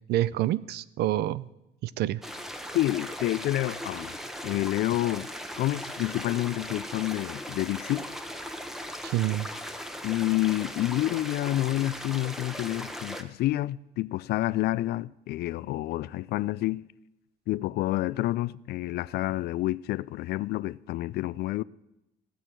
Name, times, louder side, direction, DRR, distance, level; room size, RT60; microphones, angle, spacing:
voice 1, 0.1-1.5 1.8-2.2 9.0-9.5, right 14 dB, 75° right, 0.5 m, -27 dB
sound 1, 2.2-13.2, equal, ahead, 1.1 m, -38 dB
voice 2, 2.7-4.1 4.4-5.3 5.6-8.1 10.0-16.9 17.5-21.6, left 16 dB, 70° left, 0.4 m, -28 dB
16.5 x 6.4 x 9.0 m
cardioid pair, 110°, 17 cm